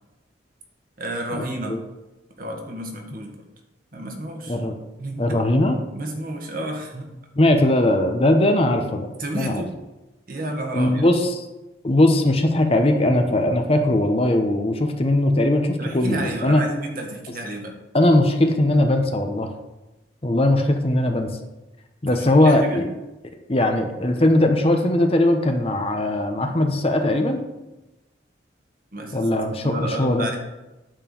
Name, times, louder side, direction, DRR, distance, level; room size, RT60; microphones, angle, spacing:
voice 1, 1.0-1.8 2.4-3.4 3.9-4.6 5.0-5.2 5.9-7.1 9.2-9.7 10.3-11.1 15.8-17.7 22.1-22.8 28.9-29.3 29.6-30.4, right 1 dB, 50° right, 2 dB, 1.5 m, -31 dB
voice 2, 5.2-5.8 7.4-9.6 10.7-11.4 11.8-16.6 17.9-19.5 20.2-21.3 22.0-22.9 23.5-27.4 29.1-30.3, left 1 dB, 30° left, 5 dB, 0.8 m, -19 dB
9.0 x 4.5 x 7.0 m, 1.0 s
head